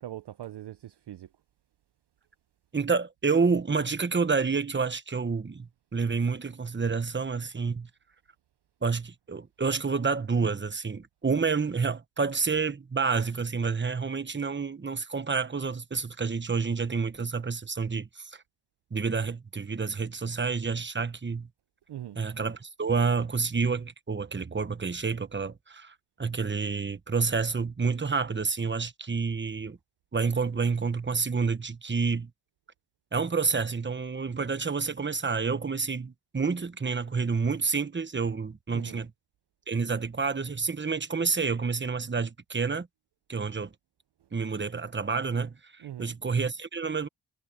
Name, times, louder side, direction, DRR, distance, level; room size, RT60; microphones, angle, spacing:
voice 1, 0.0-1.3 21.9-22.2 38.7-39.1 45.8-46.1, right 12 dB, 55° right, 0.6 m, -41 dB
voice 2, 2.7-7.9 8.8-18.4 18.9-21.5 22.2-25.9 26.2-29.8 30.1-32.3 33.1-39.1 39.7-42.9 43.3-43.7 44.3-47.1, right 5 dB, 20° right, 1.0 m, -29 dB
wide cardioid pair, 110°, 49 cm